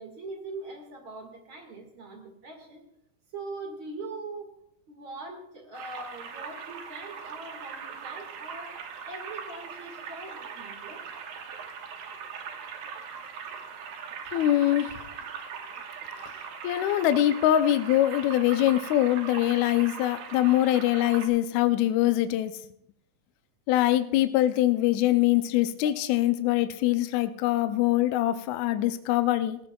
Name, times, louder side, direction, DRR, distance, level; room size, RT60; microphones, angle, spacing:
voice 1, 0.0-2.8 3.3-4.5 4.9-8.8 9.1-11.0 16.0-16.3 16.6-16.7 25.8-25.9, right 3 dB, 40° right, 3 dB, 2.2 m, -42 dB
sound 1, 5.7-21.3, right 6 dB, 80° right, 3.1 m, -40 dB
voice 2, 14.3-14.9 16.6-22.6 23.7-29.6, left 13 dB, 80° left, 9 dB, 1.7 m, -23 dB
18.0 x 15.5 x 2.3 m, 0.73 s
omnidirectional pair, 4.0 m